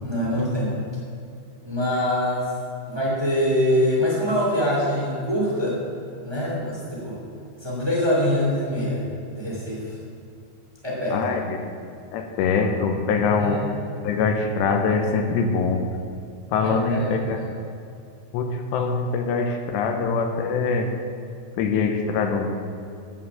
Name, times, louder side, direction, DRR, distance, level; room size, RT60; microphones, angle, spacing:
voice 1, 0.0-0.8 1.6-2.5 2.9-5.8 6.2-7.2 7.6-10.0 10.8-11.2 13.4-13.7 16.6-17.5, equal, 15° right, -5 dB, 0.8 m, -24 dB
voice 2, 11.1-11.6 12.1-13.6 14.0-15.9 16.5-17.4 18.3-20.9 21.6-22.5, left 4 dB, 80° left, 5 dB, 2.9 m, -23 dB
9.8 x 8.7 x 6.9 m, 2.5 s
omnidirectional pair, 5.2 m